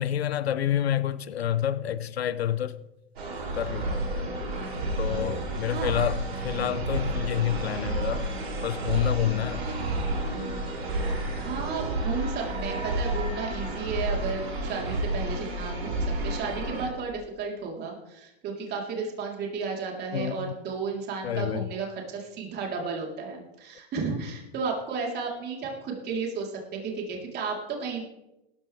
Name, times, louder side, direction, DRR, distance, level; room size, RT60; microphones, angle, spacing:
voice 1, 0.0-2.7 3.6-4.0 5.0-6.2 6.4-8.3 8.6-9.6 20.1-20.5 21.2-21.7, left 10 dB, 80° left, 1.0 m, -28 dB
sound 1, 3.2-16.9, right 1 dB, 80° right, 4.7 m, -30 dB
voice 2, 5.7-6.0 9.7-9.8 11.4-28.0, right 5 dB, 30° right, 3.9 m, -33 dB
17.5 x 14.5 x 3.5 m
hypercardioid pair, 105°, 31 cm